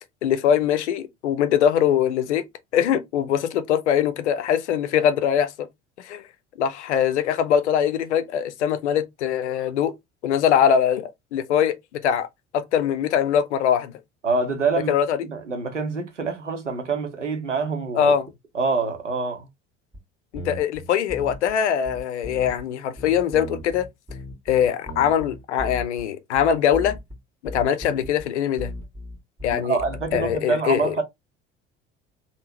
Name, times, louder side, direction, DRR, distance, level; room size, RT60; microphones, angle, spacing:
voice 1, 0.2-2.4 2.7-5.7 6.0-6.2 6.6-9.9 10.2-11.7 12.0-12.3 12.5-13.9 14.9-15.2 18.0-18.3 20.3-23.9 24.5-27.0 27.4-28.7 29.4-29.8 30.1-31.0, left 9 dB, 70° left, 0.5 m, -22 dB
voice 2, 14.2-14.9 15.3-18.1 18.5-19.5 29.5-31.0, right 4 dB, 90° right, 0.6 m, -26 dB
sound 1, 19.9-20.0 20.3-21.6 21.8-22.6 23.0-26.0 26.3-27.2 27.5-28.3 28.6-30.4, left 1 dB, 15° right, 1.4 m, -36 dB
3.5 x 2.0 x 2.7 m
figure-of-eight pair, 60°, 36 cm